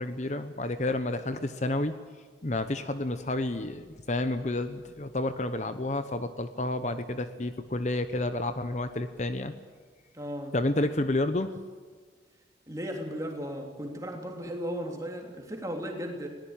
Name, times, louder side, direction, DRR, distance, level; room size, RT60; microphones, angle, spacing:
voice 1, 0.0-1.9 2.4-9.5 10.5-11.5, left 2 dB, 40° left, 10 dB, 0.9 m, -30 dB
voice 2, 10.1-10.5 12.7-16.3, equal, 20° right, 2 dB, 3.3 m, -36 dB
21.0 x 18.0 x 9.0 m, 1.5 s
head